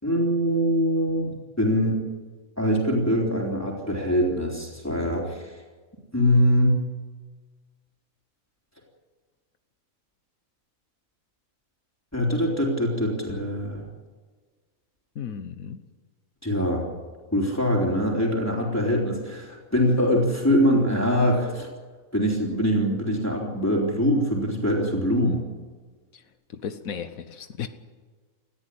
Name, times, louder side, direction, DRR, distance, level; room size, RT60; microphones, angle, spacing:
voice 1, 0.0-2.0 2.6-5.4 6.1-6.8 12.1-13.8 16.4-16.8 17.3-21.7 22.1-25.4, equal, 10° left, -2 dB, 3.8 m, -23 dB
voice 2, 15.1-15.8 26.1-26.2 26.5-27.7, left 7 dB, 90° left, 9 dB, 1.5 m, -35 dB
19.0 x 14.0 x 10.0 m, 1.4 s
omnidirectional pair, 1.4 m